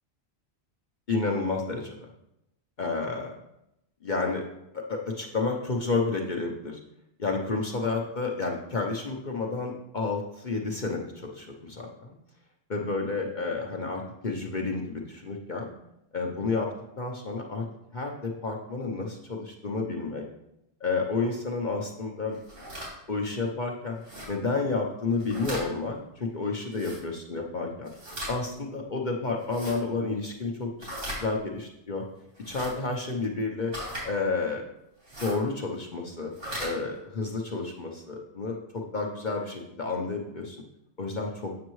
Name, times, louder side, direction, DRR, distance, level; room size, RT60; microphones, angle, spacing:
voice 1, 1.1-2.0 2.8-3.3 4.0-4.4 4.7-6.8 7.2-12.2 12.7-15.7 16.1-16.7 17.0-17.6 17.9-20.2 20.8-22.4 23.1-24.0 24.3-27.9 28.3-30.9 31.2-32.0 32.5-33.7 34.0-34.6 35.2-36.3 36.6-40.6 41.0-41.5, left 3 dB, 45° left, 0 dB, 0.9 m, -30 dB
sound 1, 22.3-22.9 24.0-24.3 25.1-25.6 26.7-27.0 27.8-28.3 29.4-29.8 30.8-31.2 32.3-32.7 33.7-34.0 35.0-35.4 36.2-36.7, equal, 85° right, 3.2 m, -37 dB
8.5 x 6.5 x 3.1 m, 0.83 s
omnidirectional pair, 1.2 m